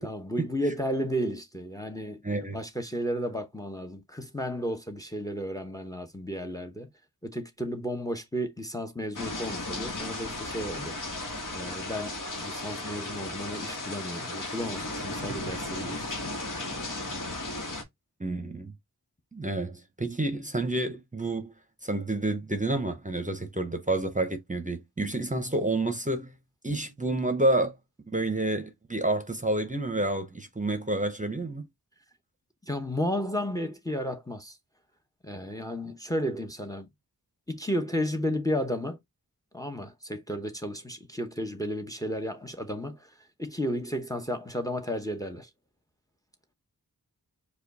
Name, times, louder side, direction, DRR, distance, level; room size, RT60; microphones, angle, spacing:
voice 1, 0.0-2.2 2.5-6.9 7.2-11.0 11.5-16.0 32.6-34.6 35.2-36.9 37.5-39.0 39.5-43.1 43.4-45.5, equal, 10° left, 0.8 m, -33 dB
voice 2, 2.2-2.6 18.2-18.7 19.3-21.5 21.8-26.3 26.6-27.8 28.1-31.7, right 2 dB, 20° right, 0.8 m, -29 dB
sound 1, 9.1-17.8, left 2 dB, 55° left, 1.3 m, -35 dB
4.8 x 2.4 x 4.0 m
wide cardioid pair, 60°, 38 cm